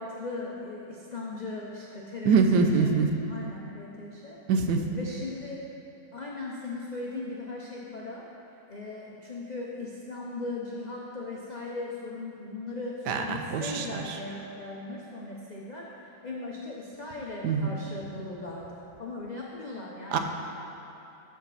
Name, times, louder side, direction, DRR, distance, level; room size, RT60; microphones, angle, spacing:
voice 1, 0.0-3.0 3.3-4.4 4.9-5.6 6.1-8.3 8.7-15.9 16.2-20.2, left 2 dB, 70° left, -3 dB, 0.4 m, -38 dB
voice 2, 2.2-3.1 4.5-4.8 13.1-13.8 17.4-17.7 20.1-20.2, right 5 dB, 75° right, 5 dB, 1.2 m, -23 dB
12.5 x 5.1 x 4.1 m, 2.9 s
omnidirectional pair, 1.8 m